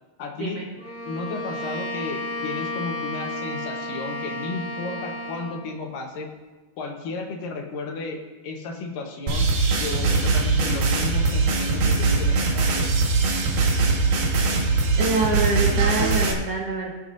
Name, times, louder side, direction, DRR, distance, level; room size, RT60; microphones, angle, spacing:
voice 1, 0.2-0.7 1.1-6.3 6.8-9.5 9.8-12.9, left 4 dB, 75° left, 2 dB, 2.8 m, -33 dB
Bowed string instrument, 0.8-5.6, left 1 dB, 25° left, 1.7 m, -32 dB
sound 1, 9.3-16.3, right 3 dB, 85° right, 3.1 m, -21 dB
voice 2, 15.0-16.9, right 3 dB, 55° right, -3 dB, 2.0 m, -25 dB
20.5 x 8.0 x 2.6 m, 1.2 s
omnidirectional pair, 4.0 m